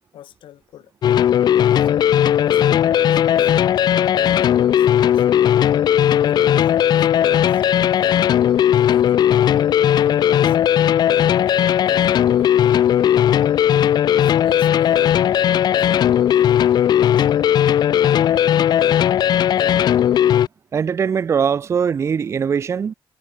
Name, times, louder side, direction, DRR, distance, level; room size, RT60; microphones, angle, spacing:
voice 1, 0.1-0.9 1.7-3.6 4.2-5.3 6.1-7.6 8.7-10.6 11.3-12.8 14.2-17.4, left 12 dB, 90° left, 5.9 m, -43 dB
sound 1, 1.0-20.5, left 10 dB, 55° left, 0.4 m, -16 dB
voice 2, 20.7-22.9, right 7 dB, 35° right, 0.4 m, -21 dB
cardioid pair, 135°, 8 cm